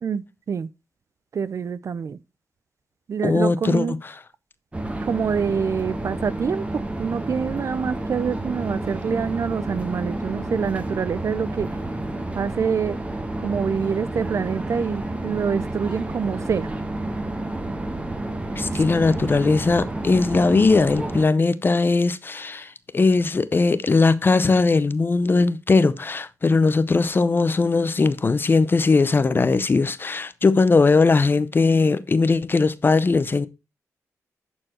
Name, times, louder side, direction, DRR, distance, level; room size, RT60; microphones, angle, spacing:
voice 1, 0.0-0.7 1.3-2.2 3.1-4.0 5.0-11.7 12.3-13.0 13.4-16.7, right 6 dB, 55° right, 0.5 m, -26 dB
voice 2, 3.2-4.0 18.5-33.5, left 3 dB, 35° left, 0.7 m, -19 dB
sound 1, 4.7-21.2, right 2 dB, 20° right, 1.4 m, -30 dB
11.0 x 4.5 x 4.3 m
cardioid pair, 80°, 6 cm